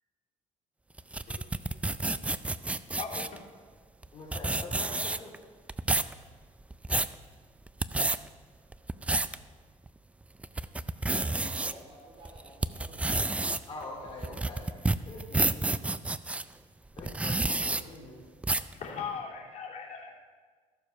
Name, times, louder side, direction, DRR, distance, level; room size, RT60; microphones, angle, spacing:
sound 1, 1.0-3.4 4.0-4.1 4.3-5.4 5.7-6.1 6.6-7.1 7.7-8.2 8.7-9.4 9.9-10.0 10.4-11.7 12.2-16.4 17.0-17.8 18.4-18.7, right 2 dB, 10° right, 0.3 m, -29 dB
voice 1, 3.0-3.4 18.7-20.1, left 6 dB, 65° left, -4 dB, 3.1 m, -39 dB
voice 2, 4.1-5.3 13.7-15.7 16.9-18.2, left 2 dB, 40° left, -5 dB, 3.0 m, -44 dB
voice 3, 11.1-13.4, right 1 dB, 45° right, 0 dB, 2.7 m, -50 dB
14.5 x 6.9 x 5.7 m, 1.5 s
cardioid pair, 110°, 13 cm